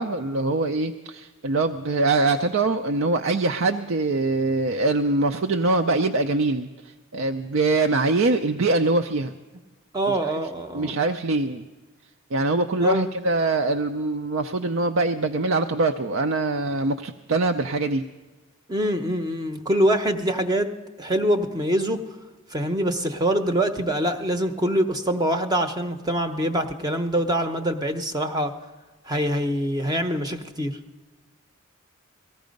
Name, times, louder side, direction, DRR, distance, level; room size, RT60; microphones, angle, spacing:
voice 1, 0.0-9.3 10.1-10.4 10.7-11.6 12.3-18.0, right 2 dB, 60° right, 6 dB, 0.5 m, -23 dB
voice 2, 9.9-11.0 12.8-13.1 18.7-20.7 21.0-22.0 22.5-28.5 29.1-30.8, right 1 dB, 20° right, 7 dB, 0.7 m, -24 dB
18.5 x 14.5 x 5.2 m, 1.2 s
head